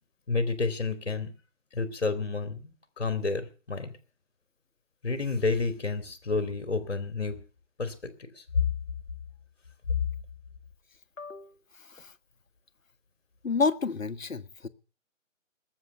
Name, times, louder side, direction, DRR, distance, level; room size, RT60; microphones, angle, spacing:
voice 1, 0.3-1.3 1.7-3.9 5.0-7.4 7.8-7.9 8.4-8.5, left 3 dB, 50° left, 2.8 m, -30 dB
voice 2, 11.2-12.1 13.4-14.7, left 4 dB, 80° left, 1.6 m, -30 dB
20.5 x 7.6 x 7.0 m
hypercardioid pair, 175°, 39 cm